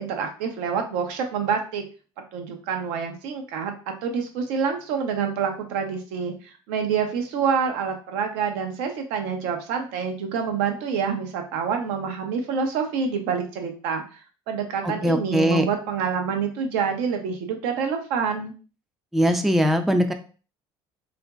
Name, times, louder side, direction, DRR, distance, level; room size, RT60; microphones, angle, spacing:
voice 1, 0.0-1.8 2.3-3.7 4.0-6.3 6.7-14.2 14.5-18.5, right 6 dB, 75° right, 4 dB, 0.6 m, -27 dB
voice 2, 14.8-15.6 19.1-20.1, equal, ahead, 6 dB, 0.3 m, -21 dB
2.9 x 2.5 x 2.2 m, 0.37 s
hypercardioid pair, 70°, 13 cm